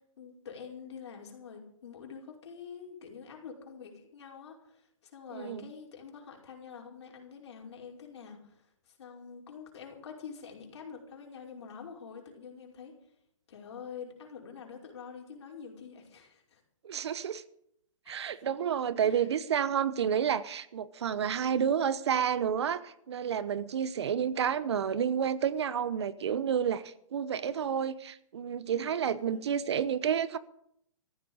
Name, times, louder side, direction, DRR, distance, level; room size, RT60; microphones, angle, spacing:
voice 1, 0.2-12.9 13.5-16.6 18.1-18.2 19.0-19.3 28.9-29.5, left 6 dB, 55° left, 5.4 m, -46 dB
voice 2, 5.3-5.7 16.8-17.4 18.1-30.4, right 8 dB, 55° right, 0.9 m, -30 dB
14.5 x 10.0 x 8.7 m
hypercardioid pair, 170°, 17 cm